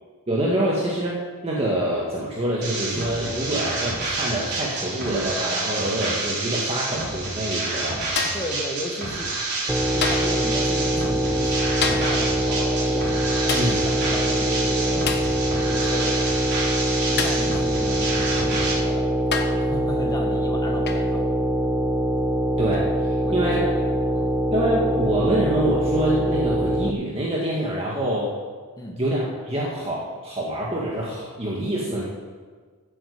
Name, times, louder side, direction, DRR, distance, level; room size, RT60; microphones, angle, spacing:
voice 1, 0.3-8.0 13.5-13.9 22.6-22.9 23.3-23.7 24.5-28.3 28.9-32.0, right 1 dB, 25° right, -5 dB, 1.9 m, -25 dB
sound 1, 2.6-18.7, right 3 dB, 50° right, 3.9 m, -28 dB
sound 2, 8.2-8.6 10.0-10.4 11.8-12.2 13.5-13.8 15.1-15.4 17.2-17.5 18.6-18.7 19.3-19.7 20.9-21.1 22.7-22.9, left 5 dB, 50° left, 1.2 m, -28 dB
voice 2, 8.3-9.4 9.9-15.2 15.6-16.2 17.1-21.3 23.2-24.3 28.8-29.0, left 1 dB, 15° left, 1 dB, 1.3 m, -35 dB
sound 3, 9.7-26.9, right 1 dB, 5° right, 0.4 m, -23 dB
15.5 x 8.6 x 5.1 m, 1.5 s
head